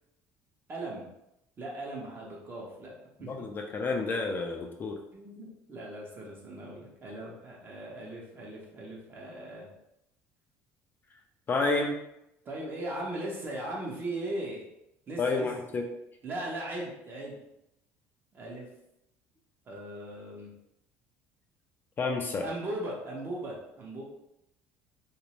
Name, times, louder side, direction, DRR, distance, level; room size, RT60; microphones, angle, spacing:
voice 1, 0.7-1.1 1.6-2.9 3.2-3.3 3.8-3.9 5.1-9.7 12.4-14.6 15.1-15.5 16.2-17.4 18.3-18.7 19.7-20.5 22.4-24.0, right 1 dB, 35° right, -3 dB, 0.9 m, -38 dB
voice 2, 3.2-5.0 11.5-11.9 15.2-15.8 22.0-22.5, left 3 dB, 30° left, 2 dB, 0.4 m, -30 dB
2.5 x 2.0 x 3.0 m, 0.84 s
supercardioid pair, 105°, 6 cm